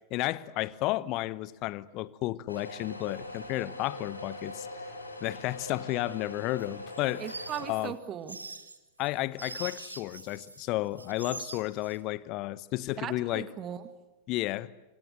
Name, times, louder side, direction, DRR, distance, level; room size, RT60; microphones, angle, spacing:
voice 1, 0.1-4.7 5.2-7.3 7.7-7.9 9.0-13.5 14.3-14.7, left 17 dB, 40° left, 0.9 m, -32 dB
sound 1, 2.5-7.7, left 1 dB, 85° left, 4.2 m, -42 dB
sound 2, 6.6-10.7 11.0-12.0, right 3 dB, 80° right, 1.7 m, -43 dB
voice 2, 7.2-8.4 13.0-13.8, right 9 dB, 30° right, 2.2 m, -38 dB
27.0 x 26.0 x 7.8 m
figure-of-eight pair, 90°, 0 cm